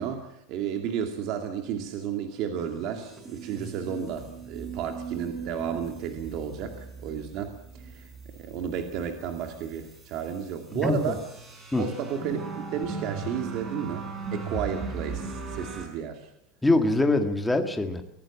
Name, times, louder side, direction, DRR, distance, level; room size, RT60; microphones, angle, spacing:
voice 1, 0.0-7.5 7.8-11.2 11.8-16.3, right 8 dB, 45° right, 5 dB, 2.4 m, -33 dB
sound 1, 2.6-15.9, right 4 dB, 15° right, 4.8 m, -39 dB
voice 2, 10.7-11.2 11.7-11.9 16.6-18.0, left 2 dB, 5° left, 5 dB, 1.8 m, -23 dB
23.5 x 17.5 x 7.3 m, 0.76 s
supercardioid pair, 170°, 0 cm